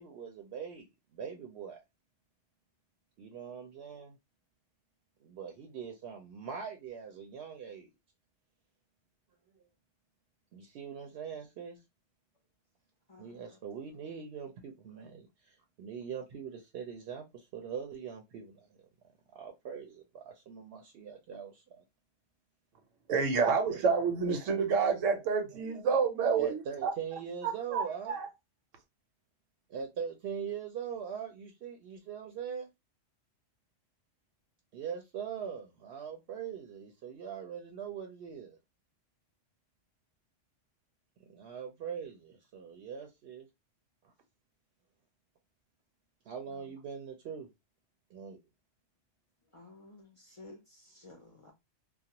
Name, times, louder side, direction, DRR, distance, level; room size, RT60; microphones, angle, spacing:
voice 1, 0.0-1.8 3.2-4.2 5.2-7.9 10.5-11.8 13.2-18.8 19.3-21.8 23.6-23.8 24.3-24.5 25.3-25.9 26.3-28.2 29.7-32.7 34.7-38.6 41.3-43.5 44.0-44.1 46.2-47.5 48.1-48.4, right 7 dB, 65° right, 0.7 m, -42 dB
voice 2, 13.1-13.4 46.5-46.8 49.5-51.5, left 2 dB, 40° left, 0.4 m, -54 dB
voice 3, 23.1-26.9 27.7-28.3, right 5 dB, 90° right, 1.0 m, -28 dB
2.4 x 2.1 x 2.7 m
omnidirectional pair, 1.3 m